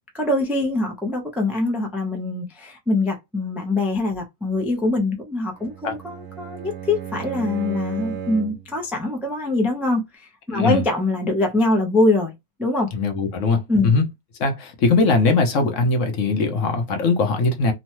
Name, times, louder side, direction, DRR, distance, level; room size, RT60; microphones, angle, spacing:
voice 1, 0.1-12.3 12.6-12.9 13.7-13.9, left 2 dB, ahead, 0.4 m, -23 dB
Bowed string instrument, 5.5-8.7, right 7 dB, 65° right, 1.1 m, -34 dB
voice 2, 12.9-14.0 14.4-17.7, left 3 dB, 65° left, 1.0 m, -20 dB
3.0 x 2.2 x 2.9 m
omnidirectional pair, 1.5 m